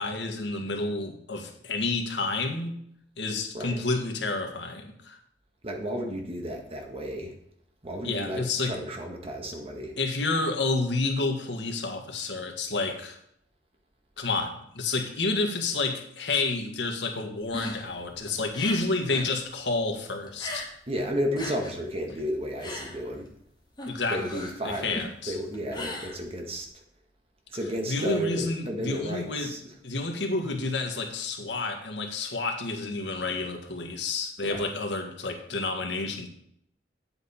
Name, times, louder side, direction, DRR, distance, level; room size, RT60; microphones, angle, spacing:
voice 1, 0.0-2.7 3.2-5.2 8.0-8.8 10.0-13.2 14.2-20.7 23.9-25.4 27.9-29.5 29.8-36.3, left 3 dB, 85° left, 4 dB, 1.7 m, -30 dB
voice 2, 5.6-7.3 7.8-10.0 20.9-23.3 24.1-26.7 27.5-29.6 34.4-34.7, equal, 35° right, 2 dB, 1.7 m, -33 dB
sound 1, 17.4-19.3 19.6-21.0 21.2-26.7, left 2 dB, 25° left, 1.9 m, -39 dB
9.7 x 7.8 x 4.4 m, 0.71 s
head